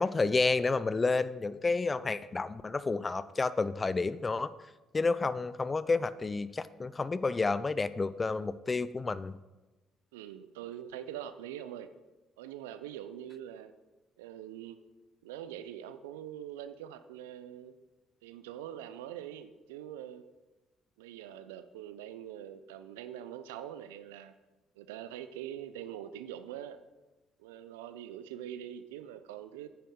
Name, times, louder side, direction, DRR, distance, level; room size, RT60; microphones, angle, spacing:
voice 1, 0.0-4.5 4.9-9.4, left 3 dB, 30° left, 16 dB, 0.5 m, -30 dB
voice 2, 10.1-11.9 12.4-13.7 14.2-14.8 15.2-17.7 18.2-20.3 21.0-24.3 24.8-26.8 27.4-29.7, right 10 dB, 85° right, 11 dB, 0.6 m, -43 dB
9.6 x 9.2 x 3.8 m, 1.1 s
hypercardioid pair, 50°, 0 cm